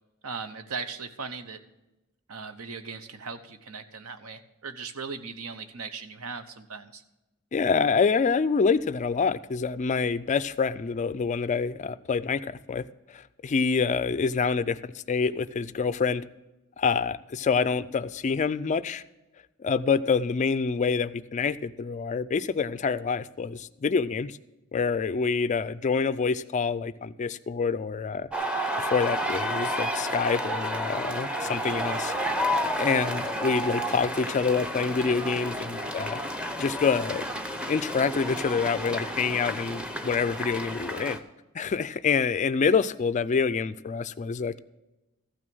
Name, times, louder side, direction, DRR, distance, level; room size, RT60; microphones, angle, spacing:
voice 1, 0.2-1.6 2.3-7.0, right 5 dB, 75° right, 10 dB, 0.9 m, -38 dB
voice 2, 7.5-16.2 16.8-19.0 19.6-24.4 24.7-28.3 28.8-32.1 32.8-36.2 36.5-37.2 37.7-41.2 41.5-44.6, left 5 dB, 35° left, 15 dB, 0.3 m, -26 dB
sound 1, 28.3-41.2, equal, 5° right, 0.7 m, -31 dB
14.5 x 6.2 x 6.1 m, 1.0 s
head